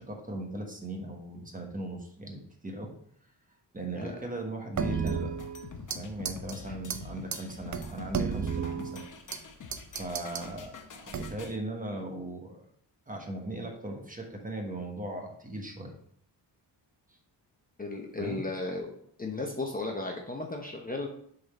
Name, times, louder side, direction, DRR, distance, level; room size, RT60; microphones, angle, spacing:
voice 1, 0.0-2.9 3.7-5.3 5.9-9.0 10.0-12.6 13.1-15.9 18.2-18.4, right 1 dB, 20° right, 2 dB, 1.1 m, -38 dB
sound 1, 4.8-6.0 6.2-6.5 6.9-7.0 7.3-7.4 7.7-9.4 9.7-10.5 11.1-11.5, right 6 dB, 45° right, 0.6 m, -33 dB
sound 2, 5.1-11.6, left 5 dB, 45° left, 0.8 m, -46 dB
voice 2, 17.8-18.9 19.2-21.1, left 2 dB, 20° left, 1 dB, 0.8 m, -35 dB
6.4 x 4.1 x 4.2 m, 0.64 s
wide cardioid pair, 120°, 42 cm